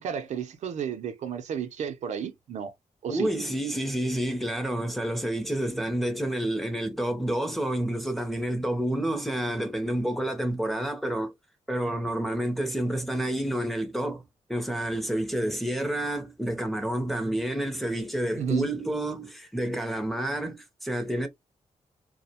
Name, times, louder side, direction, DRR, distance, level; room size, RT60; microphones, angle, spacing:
voice 1, 0.0-2.7 3.0-3.3 18.4-18.7, right 8 dB, 75° right, 0.5 m, -32 dB
voice 2, 3.1-11.3 11.7-14.2 14.5-21.3, right 1 dB, ahead, 0.5 m, -29 dB
2.3 x 2.1 x 2.7 m
cardioid pair, 115°, 12 cm